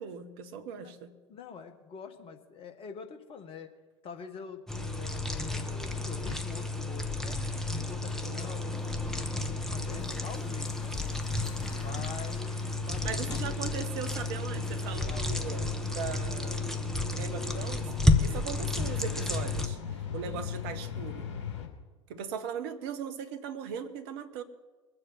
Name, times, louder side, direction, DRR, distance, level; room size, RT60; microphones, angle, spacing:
voice 1, 0.0-1.1 8.2-8.4 13.0-16.7 17.1-17.9 18.2-21.3 22.1-24.4, right 7 dB, 55° right, 8 dB, 1.3 m, -39 dB
voice 2, 1.3-3.7 4.0-7.4 7.7-10.9 11.8-13.7 15.1-15.3 18.3-18.5, left 5 dB, 35° left, 7 dB, 1.8 m, -46 dB
sound 1, 4.7-19.7, left 2 dB, 5° left, 1.3 m, -31 dB
sound 2, 8.8-21.7, left 8 dB, 65° left, 2.2 m, -42 dB
22.5 x 7.7 x 6.0 m, 1.2 s
figure-of-eight pair, 75°, 16 cm